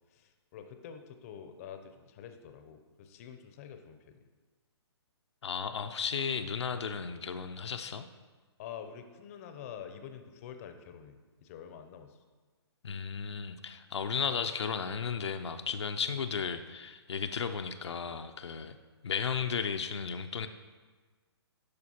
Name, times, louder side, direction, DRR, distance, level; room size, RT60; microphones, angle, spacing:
voice 1, 0.1-4.2 8.6-12.2 18.6-18.8, left 8 dB, 35° left, 7 dB, 0.5 m, -47 dB
voice 2, 5.4-8.1 12.8-18.8 19.0-20.5, left 6 dB, 90° left, 7 dB, 0.4 m, -34 dB
11.5 x 4.3 x 2.8 m, 1.4 s
hypercardioid pair, 145°, 14 cm